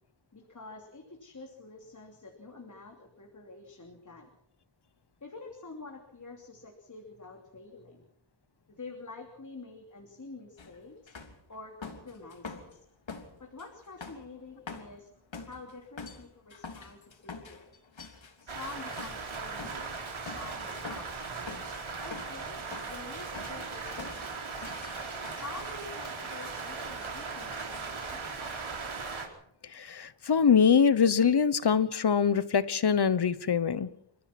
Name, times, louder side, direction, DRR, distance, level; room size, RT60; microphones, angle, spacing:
voice 1, 0.3-4.3 5.2-8.1 8.7-11.1 11.5-12.8 13.4-15.1 15.4-17.7 18.4-21.2 22.0-24.7 25.4-28.6, left 3 dB, 40° left, 2 dB, 3.1 m, -47 dB
sound 1, 10.6-10.8 11.1-12.8 13.1-19.9 20.3-20.5 20.8-22.4 22.7-23.1 23.3-25.8, left 4 dB, 75° left, 3.2 m, -45 dB
Rain, 18.5-29.3, right 4 dB, 90° right, 4.6 m, -38 dB
voice 2, 29.7-33.9, left 6 dB, 55° left, 16 dB, 1.1 m, -24 dB
29.5 x 14.5 x 6.0 m, 0.75 s
wide cardioid pair, 105°, 46 cm